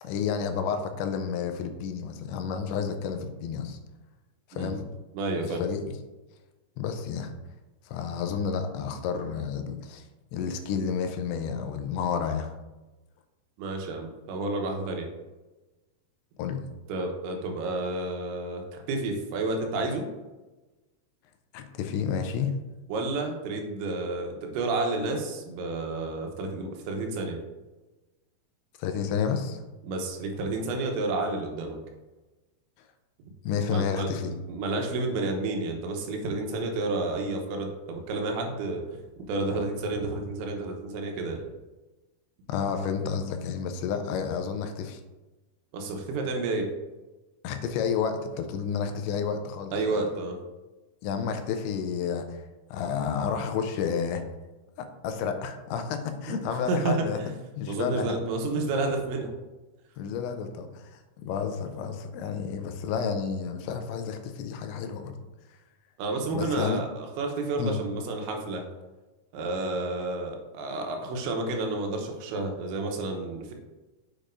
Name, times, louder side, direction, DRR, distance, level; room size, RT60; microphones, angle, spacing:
voice 1, 0.0-3.8 4.5-4.9 5.4-5.8 6.8-7.3 7.9-10.0 10.3-12.5 16.4-16.6 21.5-22.5 28.8-29.6 33.4-34.3 42.5-45.0 47.4-50.0 51.0-52.4 52.7-54.2 54.8-57.2 57.6-58.2 60.0-65.2 66.3-66.8 67.6-67.8, left 6 dB, 85° left, 6 dB, 3.0 m, -30 dB
voice 2, 5.1-5.6 13.6-15.1 16.9-20.1 22.9-27.4 29.8-31.8 33.7-34.1 34.5-38.8 39.3-41.4 45.7-46.7 49.7-50.4 56.3-57.3 57.7-59.3 66.0-68.6 69.3-73.5, right 2 dB, 85° right, 3 dB, 3.3 m, -30 dB
7.3 x 6.6 x 2.6 m, 1.1 s
omnidirectional pair, 5.2 m